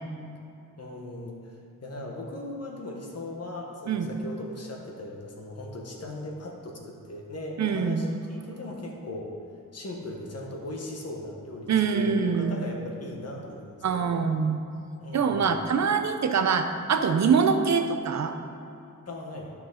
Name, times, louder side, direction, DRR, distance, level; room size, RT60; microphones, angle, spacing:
voice 1, 0.8-9.3 9.7-14.2 15.0-15.5 19.1-19.5, left 1 dB, 50° left, -1 dB, 1.3 m, -38 dB
voice 2, 7.6-8.0 11.7-12.6 13.8-14.6 15.1-18.3, right 6 dB, 55° right, 7 dB, 0.7 m, -24 dB
12.5 x 6.1 x 3.9 m, 2.6 s
wide cardioid pair, 175°, 33 cm